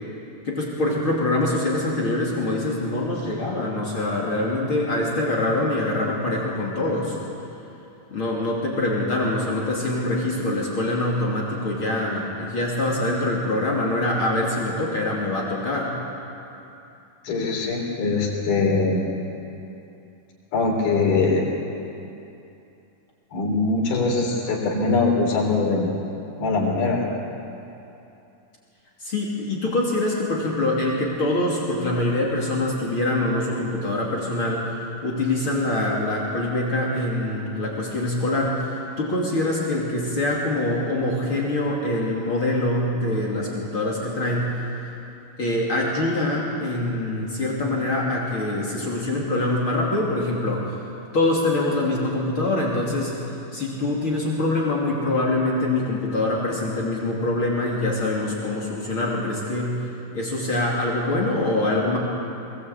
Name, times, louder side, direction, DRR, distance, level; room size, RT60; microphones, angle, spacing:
voice 1, 0.4-7.2 8.1-15.9 29.0-44.6 45.4-50.8 51.1-53.1 53.5-59.9 60.1-62.0, left 2 dB, 35° left, -4 dB, 3.2 m, -24 dB
voice 2, 17.2-19.0 20.5-21.4 23.3-25.9 26.4-27.0, left 3 dB, 90° left, -1 dB, 5.6 m, -22 dB
22.5 x 18.0 x 8.3 m, 2.8 s
omnidirectional pair, 4.3 m